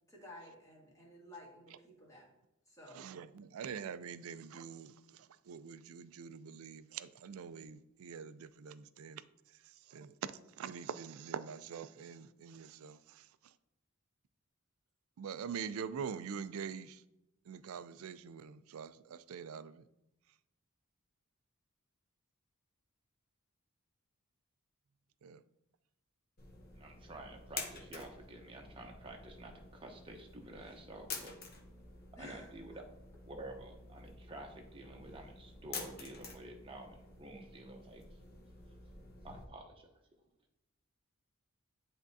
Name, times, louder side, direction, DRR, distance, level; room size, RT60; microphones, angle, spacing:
voice 1, 0.1-2.3 2.7-3.0 32.2-32.8, left 1 dB, 15° left, 1.7 m, -54 dB
voice 2, 2.9-9.2 9.6-13.5 15.2-17.0 17.5-19.8 25.2-25.4, right 7 dB, 70° right, 0.4 m, -45 dB
sound 1, 26.4-39.5, left 4 dB, 45° left, 0.9 m, -49 dB
voice 3, 26.8-31.3 32.2-32.7 33.2-38.0 39.2-39.7, right 1 dB, 25° right, 0.9 m, -50 dB
10.0 x 3.5 x 2.7 m
head